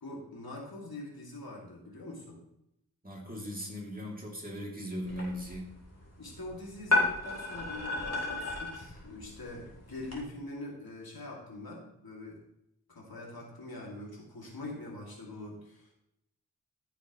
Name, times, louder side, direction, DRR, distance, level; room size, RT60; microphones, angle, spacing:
voice 1, 0.0-2.4 6.2-12.4 12.9-15.9, left 2 dB, 75° left, -2 dB, 2.5 m, -43 dB
voice 2, 3.0-5.6, equal, 25° right, -2 dB, 2.8 m, -38 dB
sound 1, 5.0-10.2, left 2 dB, 45° left, 3.2 m, -34 dB
14.0 x 6.9 x 3.1 m, 0.79 s
wide cardioid pair, 65°, 36 cm